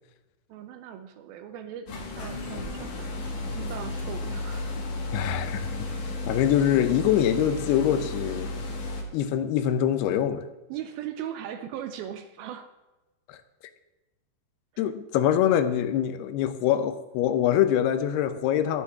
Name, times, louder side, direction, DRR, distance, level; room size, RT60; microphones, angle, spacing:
voice 1, 0.5-1.9 2.2-4.7 10.7-12.7 14.7-14.9, right 10 dB, 80° right, 2.4 m, -39 dB
sound 1, 1.9-9.0, left 2 dB, 55° left, 2.7 m, -33 dB
voice 2, 5.1-5.7 6.3-8.5 9.1-10.4 13.3-13.4 14.8-18.8, left 10 dB, 80° left, 2.7 m, -24 dB
12.0 x 9.7 x 3.6 m
omnidirectional pair, 4.7 m